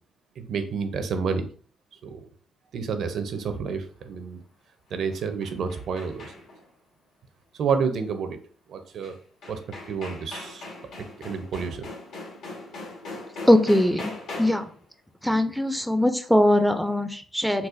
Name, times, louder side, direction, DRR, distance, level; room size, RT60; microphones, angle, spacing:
voice 1, 0.4-1.5 2.0-2.2 2.7-4.4 4.9-6.3 7.6-8.4 8.7-9.2 9.5-9.6 9.9-10.6 11.2-11.9, right 5 dB, 65° right, 8 dB, 0.5 m, -29 dB
sound 1, 4.9-6.7 9.0-9.1 9.4-14.8, left 2 dB, 75° left, 1.4 m, -40 dB
voice 2, 13.5-14.1 14.4-14.7 15.2-17.7, left 1 dB, ahead, 8 dB, 0.4 m, -21 dB
4.0 x 2.2 x 2.5 m, 0.43 s
cardioid pair, 90°, 0 cm